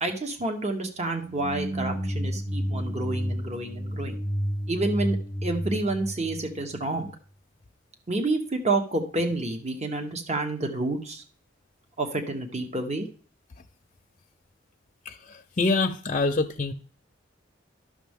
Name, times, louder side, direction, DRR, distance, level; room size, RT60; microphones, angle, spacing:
voice 1, 0.0-4.2 4.7-5.2 5.4-7.1 8.1-11.2 12.0-13.1, right 2 dB, 35° right, 5 dB, 1.1 m, -29 dB
sound 1, 1.1-7.1, equal, 85° right, 2.6 m, -31 dB
voice 2, 15.6-16.7, left 3 dB, 35° left, 5 dB, 0.6 m, -24 dB
12.0 x 6.3 x 3.6 m, 0.42 s
head